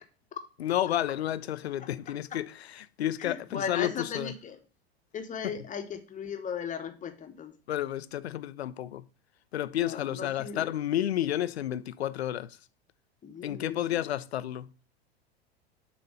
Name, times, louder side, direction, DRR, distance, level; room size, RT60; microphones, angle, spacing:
voice 1, 0.6-4.3 5.4-5.5 7.7-9.0 9.5-12.6 13.4-14.7, left 12 dB, 85° left, 0.5 m, -31 dB
voice 2, 3.2-4.6 5.1-7.5 9.7-10.7 13.2-14.0, left 7 dB, 25° left, 1.0 m, -37 dB
6.8 x 3.1 x 5.2 m
hypercardioid pair, 85°, 32 cm